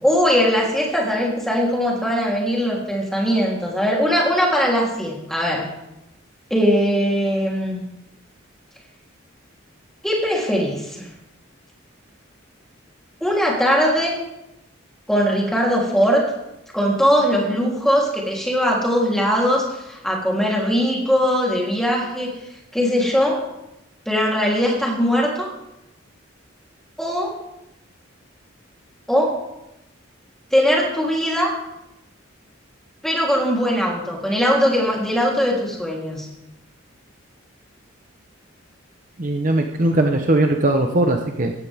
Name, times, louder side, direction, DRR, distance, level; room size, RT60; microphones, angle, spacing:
voice 1, 0.0-5.7 6.5-7.8 10.0-11.1 13.2-14.1 15.1-16.3 16.7-22.3 22.7-23.4 24.0-25.5 27.0-27.4 29.1-29.4 30.5-31.5 33.0-36.3, equal, ahead, -3 dB, 3.5 m, -20 dB
voice 2, 39.2-41.5, right 1 dB, 40° right, 4 dB, 1.0 m, -19 dB
18.0 x 15.0 x 3.6 m, 0.90 s
head